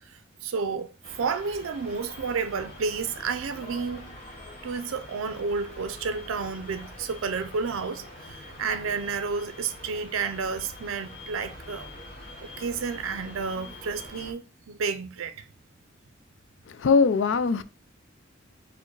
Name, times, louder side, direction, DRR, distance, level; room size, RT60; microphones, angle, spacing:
voice 1, 0.4-0.9 1.2-4.1 4.6-11.9 12.4-15.3, right 5 dB, 85° right, 0.5 m, -31 dB
sound 1, 1.0-14.3, left 1 dB, 30° left, 1.2 m, -44 dB
voice 2, 16.7-17.6, left 5 dB, 65° left, 0.4 m, -21 dB
4.6 x 2.1 x 4.5 m
head